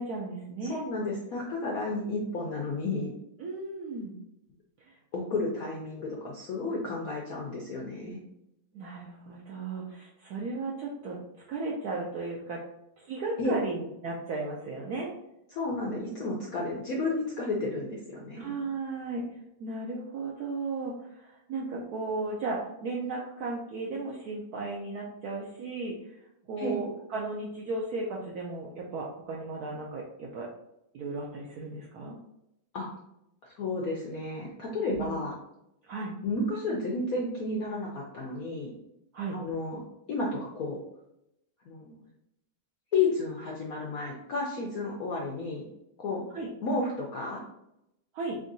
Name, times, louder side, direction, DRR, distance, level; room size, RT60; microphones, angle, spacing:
voice 1, 0.0-0.8 3.4-4.1 4.9-5.0 8.7-11.2 11.5-12.6 13.0-15.1 17.0-17.2 17.6-17.7 18.3-19.2 19.6-26.2 26.5-30.5 30.9-32.2 34.9-35.2 35.9-36.1 39.1-39.4 46.3-46.5 48.1-48.4, right 3 dB, 75° right, -2 dB, 0.8 m, -35 dB
voice 2, 0.7-3.1 5.1-8.2 13.4-13.6 15.5-18.5 26.6-26.7 32.7-32.9 33.4-35.3 36.2-38.7 39.3-39.8 40.1-40.8 41.6-42.0 42.9-45.6 46.0-46.2 46.6-47.4, left 3 dB, 75° left, -2 dB, 0.8 m, -32 dB
3.7 x 3.5 x 2.6 m, 0.82 s
omnidirectional pair, 2.2 m